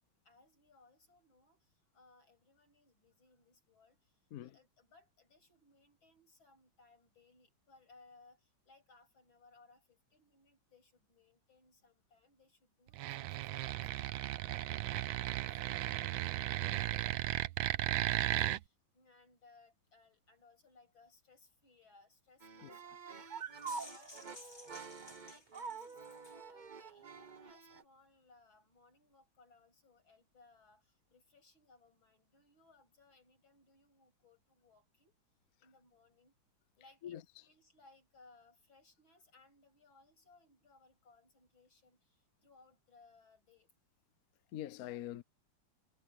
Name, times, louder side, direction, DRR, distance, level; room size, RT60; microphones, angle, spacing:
voice 1, 0.2-1.6 1.9-4.0 4.4-22.9 23.6-24.6 25.1-35.2 35.6-36.3 36.8-42.1 42.4-43.7, left 3 dB, 80° left, 8.0 m, -66 dB
sound 1, 12.9-18.6, right 15 dB, 80° right, 1.5 m, -35 dB
sound 2, 22.4-27.8, right 5 dB, 45° right, 0.6 m, -47 dB
sound 3, 23.4-26.4, left 2 dB, 35° left, 4.1 m, -55 dB
voice 2, 44.5-45.2, left 12 dB, 60° left, 1.0 m, -44 dB
omnidirectional pair, 2.1 m